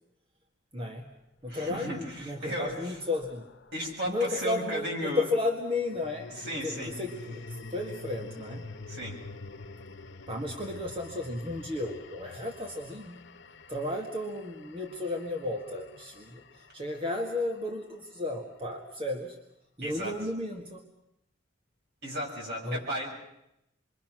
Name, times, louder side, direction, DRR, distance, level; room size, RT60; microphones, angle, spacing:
voice 1, 0.7-1.1 1.4-3.5 4.1-6.3 6.6-8.7 10.3-13.2 13.7-19.4 19.8-20.8 22.6-22.9, left 2 dB, 30° right, 1 dB, 1.9 m, -33 dB
sound 1, 1.5-4.0 5.6-17.9, left 3 dB, 70° left, 1.3 m, -47 dB
voice 2, 1.5-3.0 3.7-5.3 6.3-7.0 8.9-9.2 19.8-20.2 22.0-23.1, equal, 60° right, -1 dB, 7.2 m, -34 dB
27.0 x 23.5 x 6.2 m, 0.82 s
head